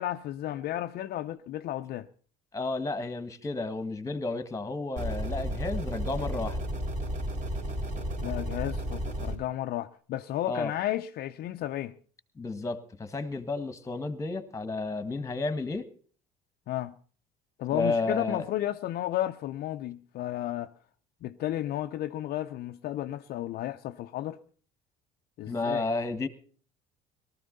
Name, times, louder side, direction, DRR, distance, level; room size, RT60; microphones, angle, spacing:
voice 1, 0.0-2.1 8.2-11.9 16.7-16.9 17.6-20.7 21.2-24.4 25.4-25.8, left 13 dB, 55° left, 0.6 m, -33 dB
voice 2, 2.5-6.6 10.5-10.7 12.4-15.9 17.7-18.4 25.5-26.3, left 3 dB, 15° left, 1.6 m, -32 dB
sound 1, 5.0-9.4, equal, 45° right, 3.9 m, -33 dB
18.5 x 13.5 x 4.0 m
supercardioid pair, 80°, 19 cm